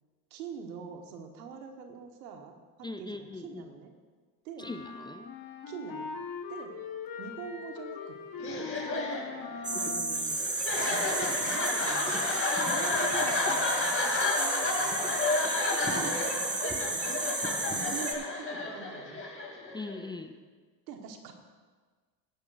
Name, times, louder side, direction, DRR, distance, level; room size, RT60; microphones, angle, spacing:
voice 1, 0.3-3.9 4.4-4.7 5.7-6.1 6.5-6.7 7.2-8.2 8.4-8.8 9.7-10.4 10.9-15.2 15.9-17.2 17.7-19.2 20.9-21.3, right 6 dB, 85° right, 5 dB, 1.4 m, -44 dB
voice 2, 2.8-3.6 4.6-5.3 19.7-20.4, left 2 dB, 10° left, 7 dB, 0.4 m, -40 dB
sound 1, 4.6-10.3, left 5 dB, 45° left, 1.7 m, -41 dB
sound 2, 8.4-20.1, left 3 dB, 25° left, 2.6 m, -31 dB
sound 3, 9.6-18.1, right 2 dB, 15° right, 1.5 m, -32 dB
16.5 x 10.5 x 2.5 m, 1.4 s
hypercardioid pair, 75°, 49 cm